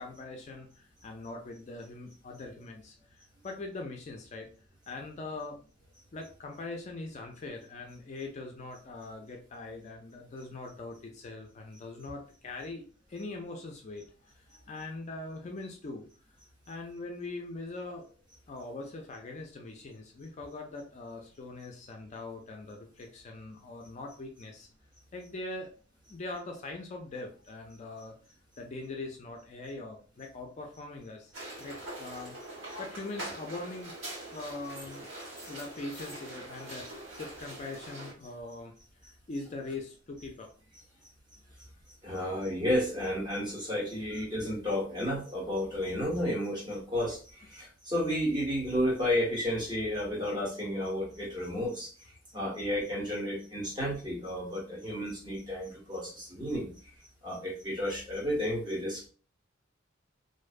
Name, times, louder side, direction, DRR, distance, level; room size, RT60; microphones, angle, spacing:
voice 1, 0.0-3.2 3.4-4.5 4.9-5.6 6.1-16.1 16.7-18.1 18.5-24.7 25.1-25.7 26.1-28.2 28.6-31.3 31.6-33.9 34.3-35.1 35.5-38.7 39.0-40.5 42.0-42.4 44.0-44.1, left 2 dB, 35° left, 2 dB, 0.4 m, -42 dB
sound 1, 31.3-38.1, right 1 dB, 70° right, 1.4 m, -43 dB
voice 2, 42.0-51.9 52.3-56.7 57.2-59.1, equal, 20° right, -4 dB, 1.1 m, -32 dB
2.5 x 2.2 x 2.4 m, 0.40 s
head